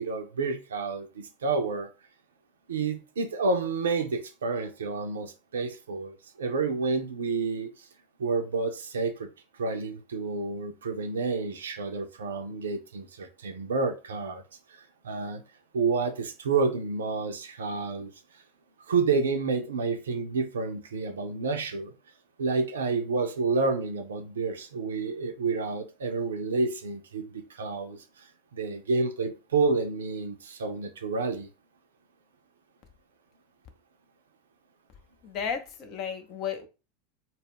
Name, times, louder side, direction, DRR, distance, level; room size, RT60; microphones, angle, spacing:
voice 1, 0.0-1.9 2.7-7.7 8.2-9.3 9.6-14.4 15.0-15.4 15.7-18.1 18.9-21.9 22.4-28.2 28.5-31.5, right 4 dB, 75° right, 0.4 m, -29 dB
voice 2, 35.2-36.7, left 7 dB, 45° left, 0.6 m, -33 dB
2.2 x 2.0 x 3.4 m
figure-of-eight pair, 85°, 0 cm